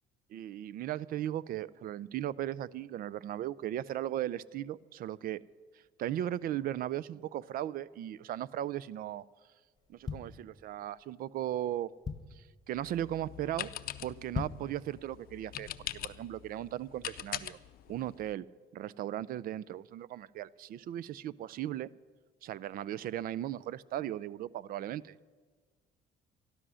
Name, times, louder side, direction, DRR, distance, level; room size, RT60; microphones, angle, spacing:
voice 1, 0.3-5.4 6.0-9.2 9.9-11.9 12.3-13.7 14.0-17.6 17.9-18.4 18.7-21.9 22.4-25.1, right 12 dB, 60° right, 21 dB, 0.4 m, -37 dB
sound 1, 9.8-11.0 11.5-11.6 11.8-12.5 13.0-13.3 13.5-13.6 14.2-14.8 15.2-15.3, left 5 dB, 25° left, 1.0 m, -39 dB
sound 2, 12.7-18.3, left 13 dB, 60° left, 0.6 m, -43 dB
12.5 x 12.5 x 6.3 m, 1.5 s
cardioid pair, 110°, 17 cm